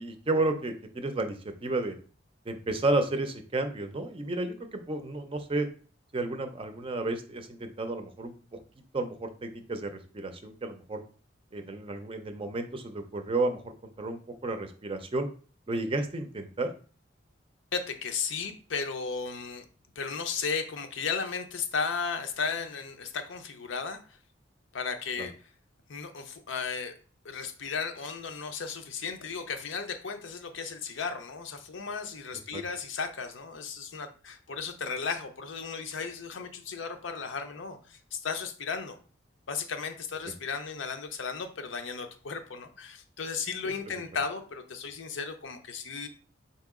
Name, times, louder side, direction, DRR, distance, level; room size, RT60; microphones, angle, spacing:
voice 1, 0.0-1.4 1.6-2.0 2.5-5.7 6.1-8.3 8.9-11.0 11.5-15.3 15.7-16.7 25.2-25.3 32.5-32.6 43.6-43.7, right 2 dB, 30° right, 7 dB, 0.5 m, -32 dB
voice 2, 17.7-19.6 20.0-24.0 24.7-25.3 25.9-26.9 27.2-39.0 39.5-46.1, left 5 dB, 85° left, 6 dB, 0.6 m, -35 dB
4.2 x 2.8 x 3.6 m, 0.40 s
head